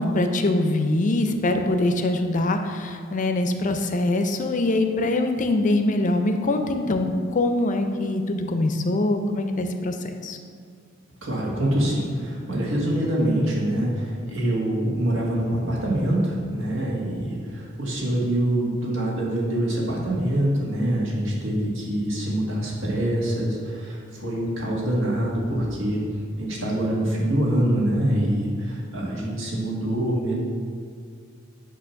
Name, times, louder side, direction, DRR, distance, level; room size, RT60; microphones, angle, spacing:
voice 1, 0.0-9.9 10.2-10.4, left 2 dB, 40° left, 6 dB, 0.5 m, -23 dB
voice 2, 11.2-26.0 26.4-30.3, right 1 dB, 85° right, -4 dB, 1.6 m, -25 dB
8.5 x 2.9 x 5.7 m, 2.2 s
head